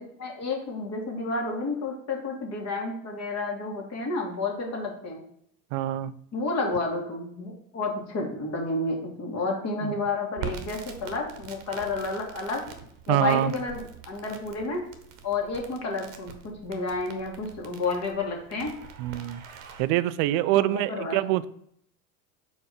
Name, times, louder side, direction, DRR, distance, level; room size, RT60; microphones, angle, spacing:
voice 1, 0.0-5.2 6.3-12.6 13.1-14.8 15.2-16.3 16.6-18.7 20.6-21.2, left 3 dB, 35° left, 0 dB, 1.9 m, -30 dB
voice 2, 5.7-6.1 9.8-9.9 13.1-13.5 19.0-21.5, right 14 dB, 45° right, 16 dB, 0.5 m, -25 dB
Crackle, 10.3-19.8, right 7 dB, 60° right, 1.1 m, -44 dB
4.5 x 4.3 x 4.9 m, 0.70 s
figure-of-eight pair, 75°, 44 cm